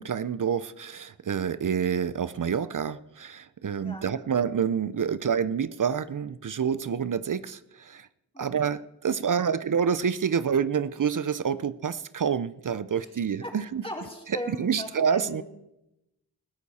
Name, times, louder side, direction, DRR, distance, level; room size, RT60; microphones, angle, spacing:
voice 1, 0.0-8.1 8.4-13.8 14.6-15.4, right 7 dB, 50° right, 0.6 m, -28 dB
voice 2, 3.8-4.1 8.3-8.6 12.9-13.1 13.4-13.5 13.8-15.4, left 1 dB, 15° left, 4.3 m, -38 dB
19.0 x 14.5 x 4.3 m
cardioid pair, 55°, 39 cm